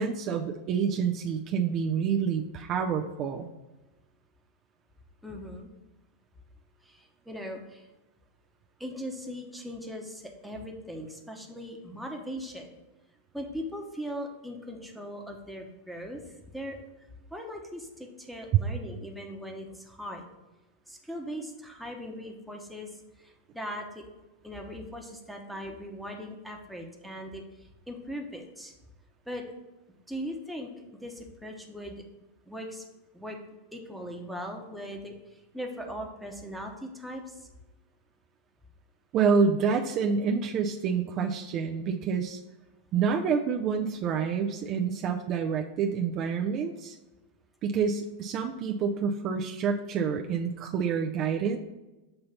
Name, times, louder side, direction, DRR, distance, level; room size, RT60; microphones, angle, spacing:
voice 1, 0.0-3.5 39.1-42.4 42.9-47.0 47.6-51.6, right 6 dB, 40° right, 3 dB, 0.4 m, -28 dB
voice 2, 5.2-5.7 6.9-7.9 8.8-12.8 13.3-16.2 16.5-16.8 17.3-20.3 20.9-22.9 23.2-24.0 24.4-27.4 27.9-28.7 29.3-29.4 30.1-30.7 31.0-32.0 32.5-32.8 33.1-33.4 33.7-35.1 35.5-37.4, equal, ahead, 1 dB, 0.9 m, -39 dB
6.5 x 2.8 x 5.6 m, 1.1 s
hypercardioid pair, 110°, 0 cm